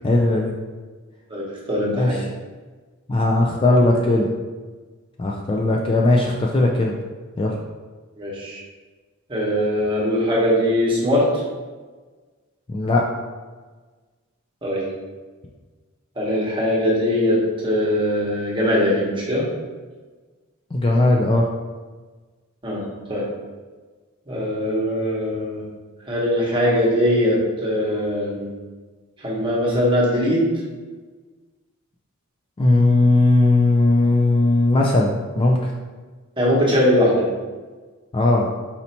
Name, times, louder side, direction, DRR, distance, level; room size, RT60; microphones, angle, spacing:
voice 1, 0.0-0.5 2.0-2.2 3.1-4.3 5.2-6.9 7.4-7.5 12.7-13.0 20.7-21.5 32.6-35.7 38.1-38.5, left 2 dB, 25° left, -1 dB, 0.3 m, -18 dB
voice 2, 1.3-2.2 8.2-8.6 9.3-11.4 14.6-14.8 16.2-19.5 22.6-23.3 24.3-25.6 26.1-28.5 29.2-30.5 36.4-37.3, equal, 25° right, -5 dB, 1.1 m, -21 dB
4.2 x 2.8 x 4.2 m, 1.4 s
head